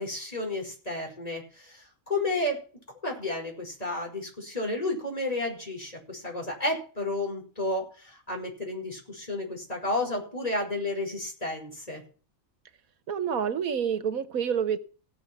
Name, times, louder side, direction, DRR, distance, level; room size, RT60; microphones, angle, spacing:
voice 1, 0.0-2.6 3.0-12.0, left 2 dB, 25° left, 5.7 m, -32 dB
voice 2, 13.1-14.8, right 7 dB, 80° right, 1.5 m, -28 dB
17.0 x 7.2 x 6.0 m
omnidirectional pair, 1.5 m